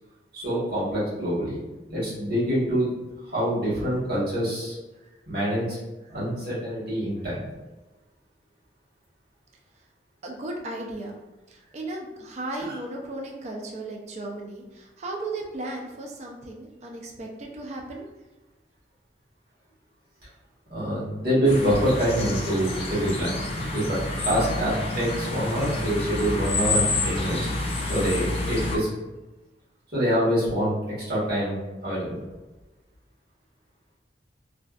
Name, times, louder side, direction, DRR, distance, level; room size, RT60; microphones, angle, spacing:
voice 1, 0.3-1.6 1.9-2.9 3.3-4.7 5.3-5.8 6.1-7.4 12.6-12.7 20.7-23.4 23.7-24.0 24.2-27.4 27.8-28.9 29.9-30.7 31.1-31.6 31.8-32.2, equal, 55° right, -9 dB, 1.2 m, -25 dB
voice 2, 10.2-11.2 11.5-18.1, right 2 dB, 35° right, -1 dB, 0.3 m, -36 dB
sound 1, 21.4-28.8, left 2 dB, 30° left, 0.4 m, -28 dB
2.5 x 2.2 x 2.3 m, 1.1 s
head